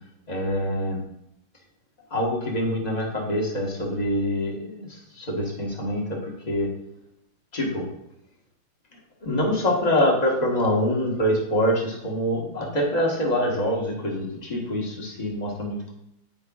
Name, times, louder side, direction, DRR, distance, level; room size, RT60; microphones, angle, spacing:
voice 1, 0.3-1.0 2.1-4.9 5.2-6.7 7.5-7.9 9.2-15.9, equal, 25° left, -2 dB, 1.0 m, -25 dB
8.6 x 4.8 x 2.3 m, 0.77 s
omnidirectional pair, 2.3 m